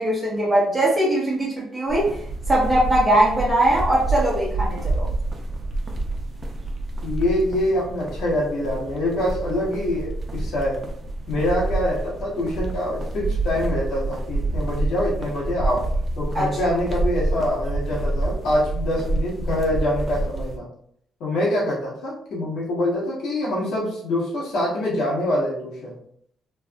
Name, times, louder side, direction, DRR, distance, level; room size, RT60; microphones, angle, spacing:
voice 1, 0.0-2.2 2.5-5.1 16.3-16.4, right 1 dB, 20° right, -6 dB, 1.1 m, -20 dB
sound 1, 1.9-20.6, right 2 dB, 40° right, 0.5 m, -28 dB
voice 2, 7.0-10.8 11.3-15.8 16.1-20.6 21.2-25.9, left 1 dB, 80° left, -6 dB, 1.5 m, -25 dB
3.3 x 2.3 x 2.3 m, 0.64 s
cardioid pair, 90°, 0 cm